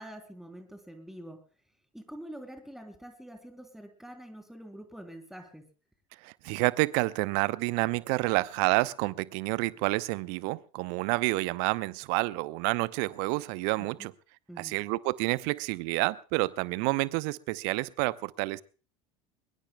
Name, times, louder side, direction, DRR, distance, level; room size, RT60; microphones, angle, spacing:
voice 1, 0.0-1.4 1.9-5.6 13.8-14.1 14.5-14.8, right 1 dB, ahead, 3.2 m, -46 dB
voice 2, 6.2-14.1 14.6-18.6, right 23 dB, 55° right, 0.8 m, -29 dB
22.5 x 21.5 x 2.3 m
figure-of-eight pair, 70°, 18 cm